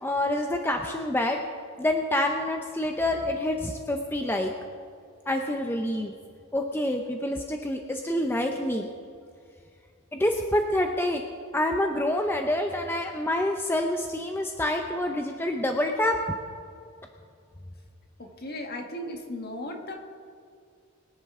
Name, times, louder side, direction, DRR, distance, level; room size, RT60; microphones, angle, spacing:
voice 1, 0.0-1.4 1.8-4.5 5.3-6.1 6.5-8.9 10.1-11.2 11.5-16.2, left 1 dB, 10° left, 3 dB, 0.6 m, -27 dB
voice 2, 18.2-20.0, left 1 dB, 45° left, 3 dB, 1.6 m, -36 dB
23.0 x 10.0 x 3.7 m, 2.3 s
head